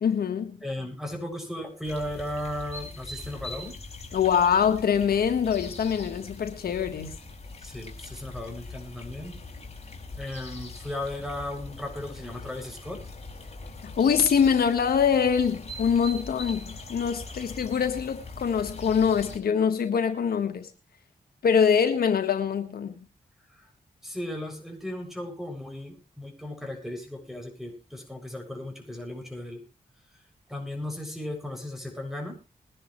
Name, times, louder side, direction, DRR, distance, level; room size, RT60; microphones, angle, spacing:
voice 1, 0.0-0.6 4.1-7.2 13.8-20.7 21.4-23.1, left 7 dB, 90° left, 7 dB, 1.5 m, -24 dB
voice 2, 0.6-3.7 7.6-9.3 10.2-13.0 23.5-23.7 24.0-29.6 30.5-32.4, left 1 dB, ahead, 3 dB, 7.1 m, -36 dB
sound 1, 1.8-19.4, left 3 dB, 45° left, 4.2 m, -42 dB
21.5 x 11.0 x 3.2 m, 0.30 s
cardioid pair, 60°, 15 cm